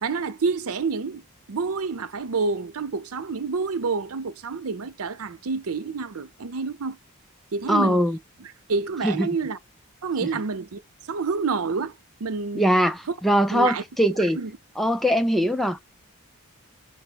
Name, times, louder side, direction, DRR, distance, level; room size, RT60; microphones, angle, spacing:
voice 1, 0.0-1.2 1.5-7.0 7.5-8.0 8.4-9.6 10.0-10.8 11.1-11.9 12.2-12.7 13.1-13.2 13.5-14.5, right 4 dB, 75° right, 0.6 m, -28 dB
voice 2, 7.7-8.2 9.0-9.3 12.6-14.4 14.8-15.8, equal, ahead, 0.3 m, -21 dB
5.7 x 2.1 x 4.4 m
head